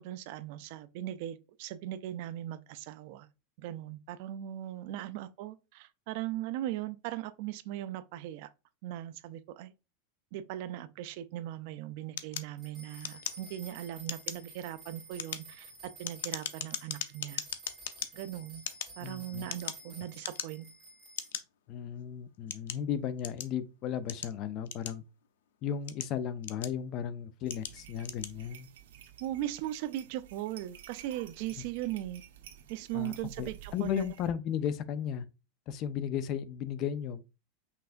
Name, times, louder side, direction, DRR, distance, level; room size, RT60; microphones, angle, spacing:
voice 1, 0.0-3.3 3.6-8.5 8.8-9.7 10.3-17.4 18.1-18.6 19.0-20.7 29.2-32.2 32.7-34.1, right 13 dB, 45° right, 0.4 m, -39 dB
sound 1, 12.2-13.7 14.0-14.5 15.0-18.1 18.6-19.9 20.2-20.7 21.2-21.4 22.1-23.6 24.1-25.3 25.7-26.9 27.5-27.8 28.0-28.4, left 10 dB, 85° left, 0.6 m, -39 dB
sound 2, 12.6-21.3, right 2 dB, 10° right, 2.2 m, -52 dB
voice 2, 19.0-19.5 21.7-25.0 25.6-28.7 32.9-35.3 35.7-37.2, left 9 dB, 30° left, 0.4 m, -35 dB
sound 3, 27.4-34.3, right 10 dB, 85° right, 1.0 m, -52 dB
5.6 x 3.3 x 2.5 m
supercardioid pair, 175°, 0 cm